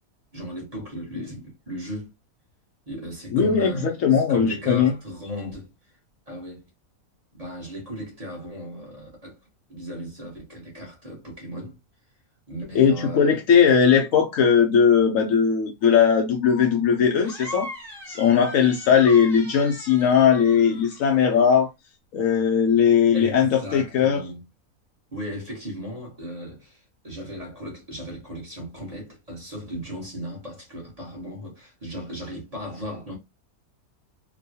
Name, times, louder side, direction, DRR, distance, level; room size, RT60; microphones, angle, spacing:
voice 1, 0.3-2.1 2.9-5.7 6.3-6.7 7.3-9.4 9.7-11.8 12.5-13.4 23.1-24.4 25.1-33.2, equal, 25° right, 1.1 m, -36 dB
voice 2, 3.3-4.9 12.7-17.7 18.1-21.7 22.1-24.2, left 7 dB, 70° left, 0.9 m, -19 dB
sound 1, 17.2-21.6, equal, ahead, 0.6 m, -40 dB
3.0 x 2.3 x 2.6 m
omnidirectional pair, 1.6 m